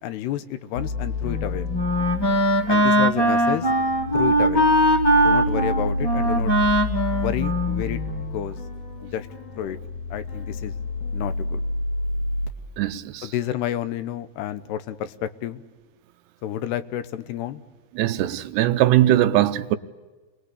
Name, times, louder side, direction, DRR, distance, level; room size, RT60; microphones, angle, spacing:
voice 1, 0.0-1.7 2.7-3.7 4.1-4.6 5.2-6.5 7.2-8.6 9.0-9.3 9.6-9.8 10.1-10.7 11.1-11.6 13.2-15.6 16.4-17.6, left 11 dB, 80° left, 3.1 m, -30 dB
sound 1, 0.8-12.5, left 2 dB, 55° left, 3.6 m, -30 dB
Wind instrument woodwind instrument, 1.2-8.4, right 1 dB, 10° left, 1.2 m, -21 dB
voice 2, 12.8-13.3 18.0-19.8, right 13 dB, 85° right, 3.1 m, -20 dB
28.5 x 21.0 x 8.3 m
omnidirectional pair, 4.7 m